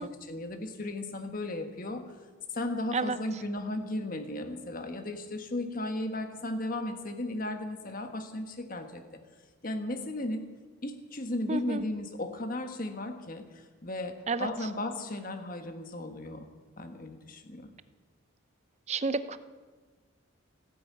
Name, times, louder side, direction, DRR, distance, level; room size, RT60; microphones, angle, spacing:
voice 1, 0.0-2.0 2.5-9.0 9.6-10.5 10.8-14.1 14.4-16.5 16.8-17.7, left 1 dB, 40° left, 6 dB, 1.5 m, -35 dB
voice 2, 11.5-11.8 14.3-14.5 18.9-19.4, right 3 dB, 30° right, 13 dB, 0.6 m, -30 dB
16.0 x 10.0 x 8.4 m, 1.4 s
head